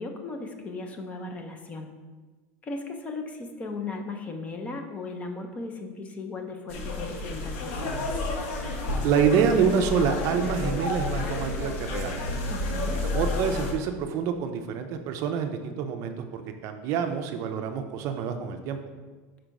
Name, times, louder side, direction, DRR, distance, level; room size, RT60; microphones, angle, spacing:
voice 1, 0.0-1.9 2.6-8.1 12.5-13.0, left 3 dB, 20° left, 4 dB, 0.6 m, -37 dB
sound 1, 6.7-13.7, left 2 dB, 70° left, 1.2 m, -30 dB
voice 2, 9.0-12.2 12.9-18.8, right 7 dB, 40° right, 6 dB, 0.5 m, -27 dB
6.0 x 4.5 x 5.1 m, 1.3 s
supercardioid pair, 165°, 7 cm